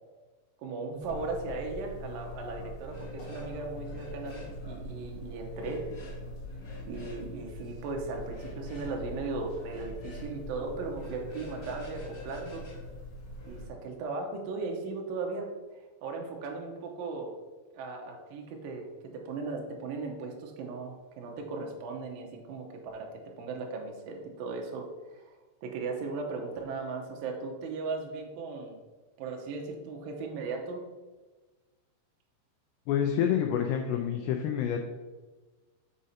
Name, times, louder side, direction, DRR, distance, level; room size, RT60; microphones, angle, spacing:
voice 1, 0.6-5.8 6.9-12.6 13.4-15.5 16.0-17.3 17.7-22.7 22.9-23.1 23.4-24.9 25.1-25.3 25.6-28.8 29.2-30.8, right 3 dB, 75° right, 2 dB, 2.1 m, -37 dB
sound 1, 1.0-13.7, equal, 50° left, 1.7 m, -42 dB
sound 2, 2.8-3.5 3.8-4.5 5.5-6.2 6.5-7.2 8.2-8.9 9.6-10.3 10.9-13.6, left 2 dB, 30° left, 1.5 m, -50 dB
voice 2, 32.9-34.8, left 9 dB, 85° left, 3 dB, 2.4 m, -28 dB
6.3 x 5.1 x 4.2 m, 1.2 s
omnidirectional pair, 5.3 m